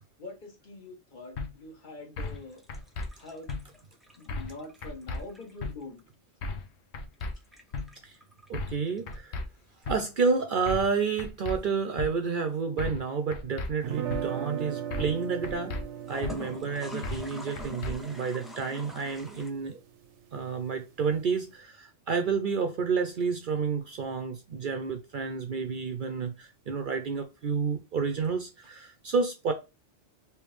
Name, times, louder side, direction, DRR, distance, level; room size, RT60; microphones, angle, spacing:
voice 1, 0.2-2.6 3.2-3.5 4.2-6.0, left 2 dB, 45° left, 1.1 m, -44 dB
sound 1, 1.4-1.5 2.2-2.4 2.7-3.1 3.5-3.6 4.3-4.6 4.8-5.2 5.6-5.7 6.4-6.7 6.9-7.3 7.7-7.9 8.5-8.8 9.1-9.4 9.8-10.0 10.7-10.9 11.2-11.6 12.0-12.1 12.8-13.1 13.3-13.7 14.1-14.2 14.9-15.2 15.4-15.8 16.2-16.3 17.0-17.3 17.6-17.9, left 3 dB, 75° left, 0.9 m, -34 dB
sound 2, 2.2-5.8 7.1-9.2 9.8-10.7 16.0-19.5, left 1 dB, ahead, 0.4 m, -45 dB
voice 2, 8.5-9.4 9.9-15.8 16.1-19.8 20.3-29.5, right 5 dB, 60° right, 0.6 m, -30 dB
sound 3, 13.8-19.8, right 9 dB, 85° right, 0.9 m, -38 dB
3.4 x 3.0 x 3.1 m
omnidirectional pair, 1.2 m